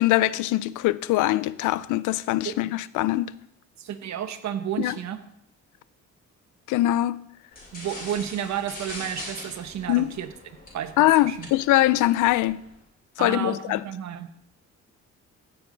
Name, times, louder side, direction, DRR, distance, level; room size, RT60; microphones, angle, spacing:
voice 1, 0.0-3.3 4.8-5.0 6.7-7.2 9.9-10.1 11.0-12.6 13.2-13.8, left 16 dB, 85° left, 0.5 m, -22 dB
voice 2, 3.8-5.2 7.7-10.3 10.7-11.5 13.2-14.3, right 10 dB, 65° right, 1.1 m, -32 dB
sound 1, 7.5-12.8, left 1 dB, 30° left, 4.6 m, -42 dB
15.5 x 6.9 x 3.9 m
cardioid pair, 90°, 30 cm